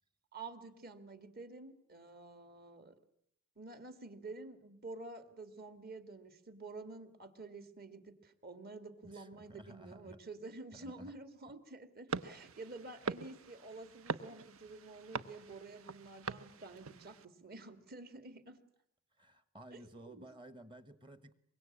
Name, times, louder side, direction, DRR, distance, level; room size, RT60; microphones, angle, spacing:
voice 1, 0.3-2.9 3.6-18.6 19.7-20.3, right 3 dB, 40° right, 10 dB, 2.1 m, -50 dB
voice 2, 9.0-10.2 10.7-11.1 19.2-21.3, right 1 dB, 20° right, 13 dB, 1.2 m, -54 dB
sound 1, 12.1-17.3, right 4 dB, 65° right, 1.0 m, -43 dB
24.5 x 22.5 x 8.6 m, 0.71 s
head